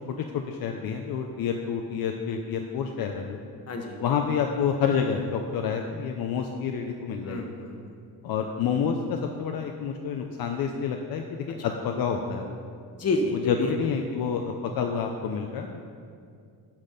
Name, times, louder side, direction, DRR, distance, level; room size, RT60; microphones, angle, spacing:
voice 1, 0.1-3.4 4.0-7.5 8.2-12.6 13.5-15.8, left 6 dB, 70° left, 3 dB, 0.6 m, -28 dB
voice 2, 3.7-4.0 7.2-8.0 12.9-13.8, left 2 dB, 40° left, 3 dB, 1.1 m, -29 dB
12.0 x 4.1 x 5.1 m, 2.3 s
cardioid pair, 125°, 37 cm